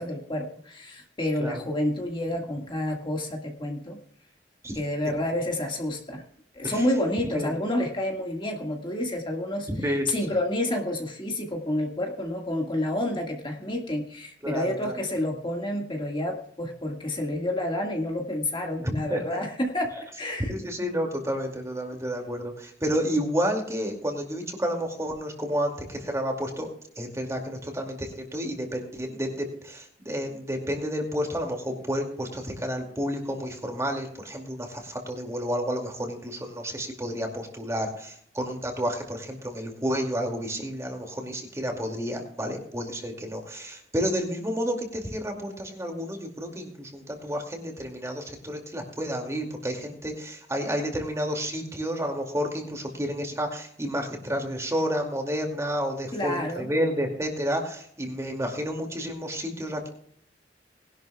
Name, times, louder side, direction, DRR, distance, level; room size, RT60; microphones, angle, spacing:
voice 1, 0.0-4.0 4.7-6.2 6.5-20.5 56.1-56.7, left 1 dB, 25° left, 1 dB, 1.8 m, -29 dB
voice 2, 9.7-10.1 14.4-15.0 18.8-19.2 20.5-26.7 27.0-59.9, equal, 15° right, 2 dB, 2.4 m, -30 dB
20.0 x 11.5 x 2.3 m, 0.65 s
head